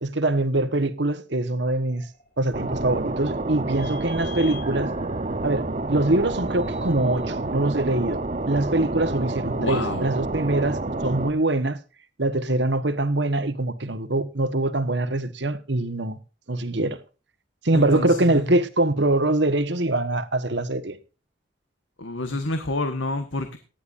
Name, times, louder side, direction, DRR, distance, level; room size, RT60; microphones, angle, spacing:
voice 1, 0.0-2.0 2.4-4.9 5.4-8.2 8.5-11.8 12.2-16.2 16.5-17.0 17.6-21.0, right 2 dB, 65° right, 1.4 m, -23 dB
sound 1, 1.9-7.4, left 6 dB, 50° left, 4.0 m, -48 dB
sound 2, 2.5-11.3, right 2 dB, 40° right, 0.9 m, -29 dB
voice 2, 9.5-10.1 17.7-18.6 22.0-23.6, left 2 dB, 85° left, 1.5 m, -29 dB
18.5 x 12.0 x 2.6 m
head